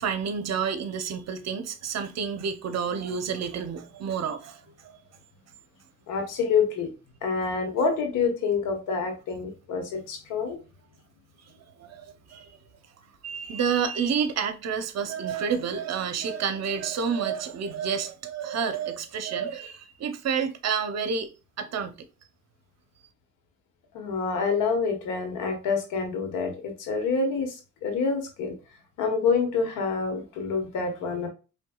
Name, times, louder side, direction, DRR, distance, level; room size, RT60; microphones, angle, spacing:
voice 1, 0.0-5.0 11.5-12.5 13.2-21.3 21.6-22.0, right 6 dB, 60° right, 0.8 m, -29 dB
voice 2, 6.1-6.9 7.2-10.6 23.9-28.5 29.0-31.3, left 5 dB, 90° left, 1.3 m, -27 dB
4.6 x 3.2 x 2.3 m
cardioid pair, 90°, 30 cm